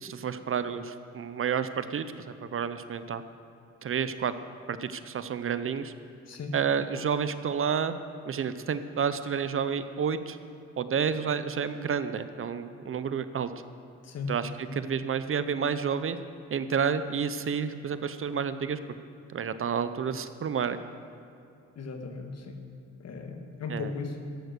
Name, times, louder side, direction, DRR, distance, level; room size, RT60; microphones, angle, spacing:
voice 1, 0.0-3.2 3.8-4.3 4.7-5.9 6.5-7.9 8.2-10.4 10.8-13.5 14.3-16.2 16.5-18.8 19.3-20.8 23.7-23.9, right 7 dB, 45° right, 12 dB, 0.7 m, -30 dB
voice 2, 21.8-22.6 23.0-24.2, left 4 dB, 55° left, 4 dB, 1.9 m, -36 dB
14.0 x 11.0 x 6.8 m, 2.6 s
cardioid pair, 90°, 30 cm